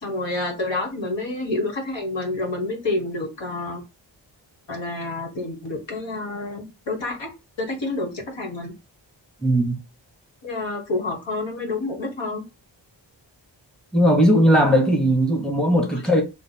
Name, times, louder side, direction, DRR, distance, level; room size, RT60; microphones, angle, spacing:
voice 1, 0.0-3.8 4.7-7.3 7.6-8.7 10.4-12.4, left 2 dB, 65° left, 1.5 m, -28 dB
voice 2, 9.4-9.8 13.9-16.2, equal, ahead, 0.9 m, -18 dB
3.3 x 2.0 x 4.2 m
cardioid pair, 50°, 47 cm